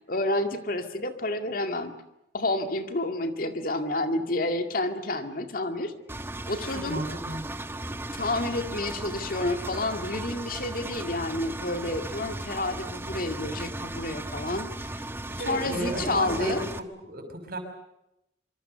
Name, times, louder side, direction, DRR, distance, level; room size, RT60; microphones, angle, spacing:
voice 1, 0.1-2.0 2.3-5.9 6.5-7.0 8.2-14.7 15.5-16.6, left 2 dB, 55° left, 7 dB, 2.1 m, -29 dB
Engine, 6.1-16.8, right 1 dB, 15° right, 1.1 m, -36 dB
voice 2, 6.7-7.4 15.3-17.6, right 1 dB, 55° right, 6 dB, 6.0 m, -33 dB
25.5 x 24.5 x 6.8 m, 0.84 s
head